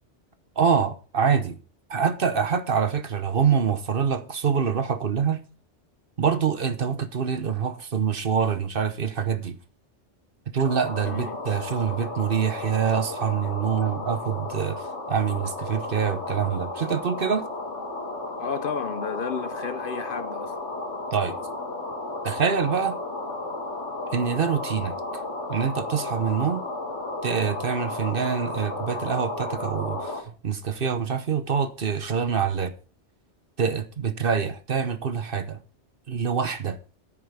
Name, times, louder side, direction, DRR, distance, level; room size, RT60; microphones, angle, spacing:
voice 1, 0.6-1.6 1.9-5.4 6.2-9.6 10.5-14.8 15.1-17.4 21.1-21.4 22.2-23.0 24.1-25.0 25.5-26.6 27.2-30.2 30.4-32.7 33.6-35.6 36.1-36.8, right 7 dB, 55° right, 1.1 m, -25 dB
sound 1, 10.6-30.2, left 2 dB, 80° left, 2.6 m, -33 dB
voice 2, 11.0-11.4 18.4-20.5, left 6 dB, 55° left, 0.9 m, -32 dB
10.0 x 8.8 x 5.0 m
omnidirectional pair, 1.2 m